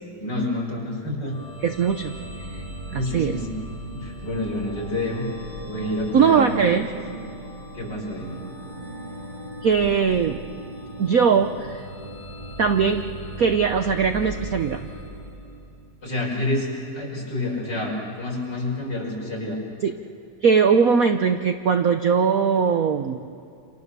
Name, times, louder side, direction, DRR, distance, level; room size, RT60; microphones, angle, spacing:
voice 1, 0.2-1.4 2.9-3.5 3.9-5.2 5.7-6.8 7.7-8.4 16.0-16.7 16.9-19.6, left 1 dB, 50° left, -2 dB, 6.4 m, -28 dB
sound 1, 1.3-16.0, right 1 dB, 20° right, 5.7 m, -38 dB
voice 2, 1.6-2.2 2.9-3.4 6.1-6.9 9.6-10.4 11.0-11.8 12.6-13.1 13.4-14.8 19.8-19.9 20.4-23.2, right 6 dB, 55° right, 7 dB, 1.0 m, -20 dB
29.0 x 28.0 x 6.8 m, 2.5 s
omnidirectional pair, 2.4 m